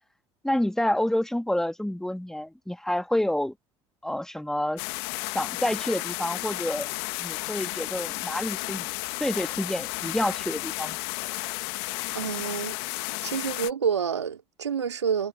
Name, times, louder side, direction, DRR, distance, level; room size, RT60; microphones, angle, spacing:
voice 1, 0.4-3.5 4.0-4.8 5.3-6.9 7.2-8.9 9.2-11.0, left 1 dB, 5° left, 2.0 m, -28 dB
sound 1, 4.8-13.7, left 31 dB, 65° left, 1.5 m, -33 dB
voice 2, 12.1-12.8 13.2-15.3, right 7 dB, 85° right, 2.4 m, -28 dB
figure-of-eight pair, 60°, 14 cm